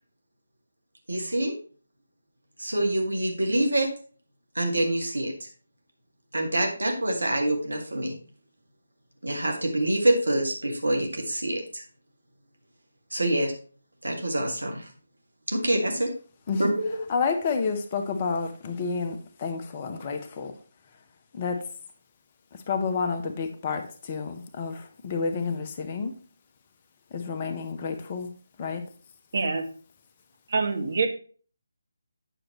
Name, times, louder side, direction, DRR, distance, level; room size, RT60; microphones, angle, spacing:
voice 1, 1.1-1.5 2.6-3.9 4.6-5.5 6.3-8.2 9.2-11.8 13.1-13.5 14.0-14.9 15.5-16.1 16.6-16.9, right 1 dB, 75° right, 3 dB, 2.0 m, -26 dB
voice 2, 17.1-20.5 21.3-21.6 22.7-26.1 27.1-28.3 28.6-28.8, left 5 dB, 30° left, 6 dB, 0.8 m, -30 dB
voice 3, 29.3-29.7 30.5-31.1, right 4 dB, 50° right, 5 dB, 1.2 m, -25 dB
9.0 x 6.3 x 3.1 m, 0.41 s
figure-of-eight pair, 150°, 0 cm